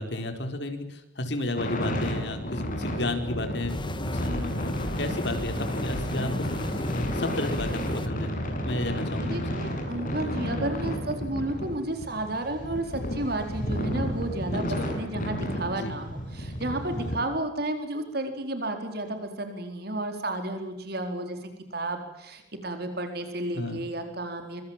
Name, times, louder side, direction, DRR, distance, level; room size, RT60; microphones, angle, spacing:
voice 1, 0.0-6.8 7.1-8.3 8.6-9.4 14.8-14.9 15.7-16.0 17.0-17.1 23.5-23.8, left 1 dB, 70° left, 6 dB, 4.6 m, -33 dB
sound 1, 1.6-17.2, equal, 50° left, 7.9 m, -32 dB
sound 2, 3.7-8.1, left 1 dB, 25° left, 1.7 m, -35 dB
voice 2, 9.2-21.4 21.7-24.6, right 1 dB, 60° right, 6 dB, 4.3 m, -32 dB
25.0 x 24.5 x 7.5 m, 0.81 s
head